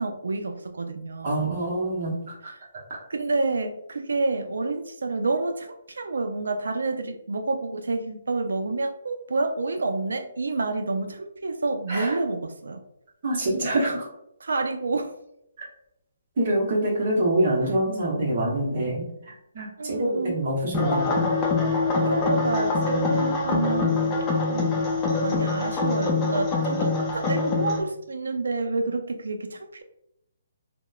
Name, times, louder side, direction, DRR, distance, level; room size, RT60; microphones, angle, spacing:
voice 1, 0.0-1.6 3.1-12.8 14.4-15.1 17.6-17.7 19.8-20.4 22.0-24.2 24.5-24.8 25.2-29.8, right 3 dB, 90° right, 7 dB, 0.3 m, -28 dB
voice 2, 1.2-2.2 2.9-3.0 11.9-12.2 13.2-14.1 16.4-21.3 22.9-23.2 26.6-26.9, right 1 dB, 40° right, -2 dB, 0.8 m, -26 dB
sound 1, 20.7-27.8, left 3 dB, 15° left, 0.3 m, -24 dB
2.9 x 2.0 x 2.2 m, 0.79 s
hypercardioid pair, 170°, 0 cm